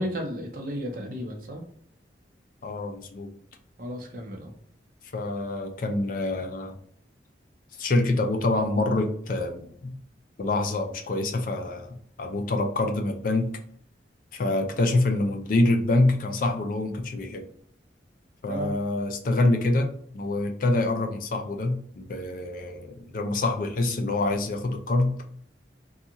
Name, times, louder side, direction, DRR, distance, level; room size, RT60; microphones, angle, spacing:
voice 1, 0.0-1.6 3.8-4.5 18.5-18.7, equal, 50° right, 3 dB, 0.6 m, -33 dB
voice 2, 2.6-3.3 5.1-6.8 7.8-9.9 10.4-13.6 14.3-17.5 18.4-25.2, left 2 dB, 50° left, 5 dB, 0.4 m, -26 dB
2.8 x 2.3 x 2.6 m, 0.62 s
head